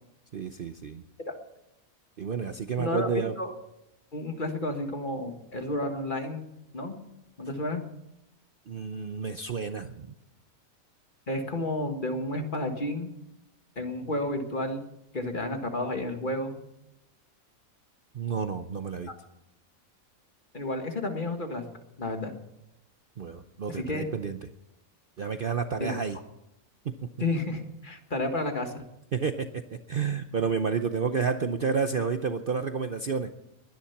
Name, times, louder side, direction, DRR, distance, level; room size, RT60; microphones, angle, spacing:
voice 1, 0.3-1.0 2.2-3.3 8.7-10.1 18.1-19.1 23.2-24.4 25.2-26.2 26.8-27.1 29.1-33.3, right 5 dB, 50° right, 8 dB, 0.7 m, -30 dB
voice 2, 2.8-3.1 3.4-3.5 4.1-6.5 6.7-7.0 7.4-7.8 11.3-13.1 13.8-14.8 15.1-16.6 20.5-21.7 22.0-22.3 23.7-24.1 25.8-26.0 27.2-28.8, left 1 dB, 35° left, 5 dB, 1.7 m, -31 dB
21.0 x 10.0 x 5.9 m, 0.86 s
omnidirectional pair, 1.5 m